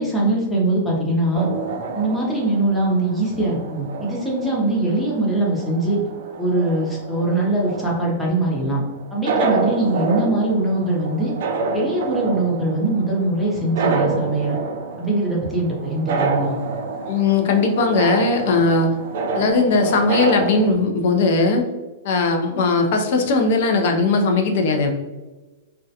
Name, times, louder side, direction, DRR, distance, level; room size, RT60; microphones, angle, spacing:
voice 1, 0.0-1.5 1.9-6.0 6.4-8.8 9.1-11.3 11.7-14.6 15.0-16.6, right 2 dB, 5° left, -5 dB, 0.6 m, -22 dB
sound 1, 1.3-20.7, right 3 dB, 60° right, 0.3 m, -28 dB
voice 2, 17.1-18.9 19.3-21.6 22.0-24.9, left 3 dB, 55° left, 4 dB, 0.4 m, -18 dB
2.3 x 2.1 x 2.7 m, 1.2 s
supercardioid pair, 155°, 0 cm